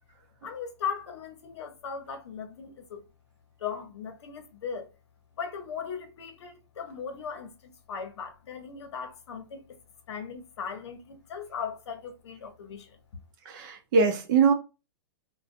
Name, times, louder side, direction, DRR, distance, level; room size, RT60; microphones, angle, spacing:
voice 1, 0.4-3.0 3.6-4.9 5.4-9.6 10.1-13.0, left 6 dB, 75° left, 0.8 m, -38 dB
voice 2, 13.5-14.5, right 5 dB, 45° right, 0.6 m, -22 dB
2.5 x 2.2 x 2.5 m
hypercardioid pair, 140°, 15 cm